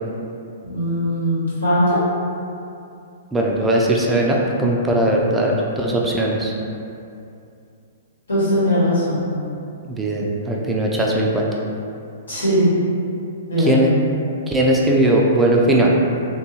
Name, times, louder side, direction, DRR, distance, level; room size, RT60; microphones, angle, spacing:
voice 1, 0.6-2.0 8.3-9.3 12.3-12.7 13.5-13.8, equal, 90° left, -11 dB, 1.4 m, -19 dB
voice 2, 3.3-6.5 9.8-11.5 13.6-13.9 14.5-15.9, right 1 dB, 10° right, -2 dB, 0.3 m, -19 dB
2.7 x 2.2 x 2.7 m, 2.6 s
hypercardioid pair, 120°, 0 cm